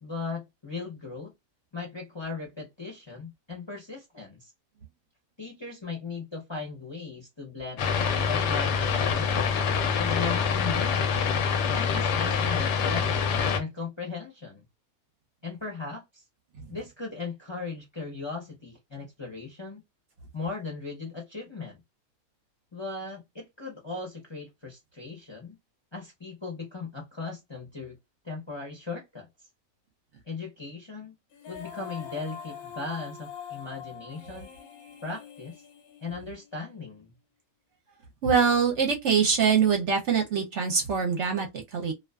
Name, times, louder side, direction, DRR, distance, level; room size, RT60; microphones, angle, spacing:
voice 1, 0.0-1.3 1.7-4.5 5.4-7.9 8.3-9.6 10.0-11.2 11.7-14.6 15.4-16.2 16.7-19.8 20.3-21.8 22.7-25.6 25.9-28.0 28.2-29.3 30.3-31.1 31.5-34.5 35.0-35.6 36.0-37.1, left 4 dB, 25° left, 0.6 m, -38 dB
sound 1, 7.8-13.6, left 6 dB, 65° left, 0.8 m, -25 dB
Female singing, 31.3-36.5, left 7 dB, 90° left, 1.2 m, -44 dB
voice 2, 38.2-41.9, right 6 dB, 65° right, 0.8 m, -24 dB
2.4 x 2.3 x 2.2 m
omnidirectional pair, 1.5 m